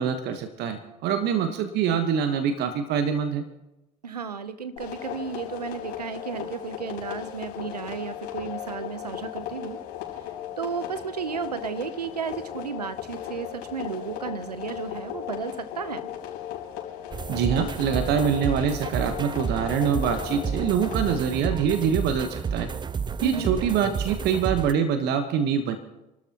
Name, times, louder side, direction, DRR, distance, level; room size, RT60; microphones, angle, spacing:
voice 1, 0.0-3.4 17.3-22.7 23.2-25.8, right 7 dB, 55° right, 8 dB, 1.2 m, -25 dB
voice 2, 4.0-9.8 10.6-16.1 23.2-23.5, right 6 dB, 90° right, 12 dB, 0.8 m, -33 dB
sound 1, 4.8-21.2, left 11 dB, 65° left, 4.6 m, -37 dB
sound 2, 17.1-24.7, right 6 dB, 25° right, 0.5 m, -31 dB
28.5 x 12.5 x 2.9 m, 0.95 s
hypercardioid pair, 60°, 20 cm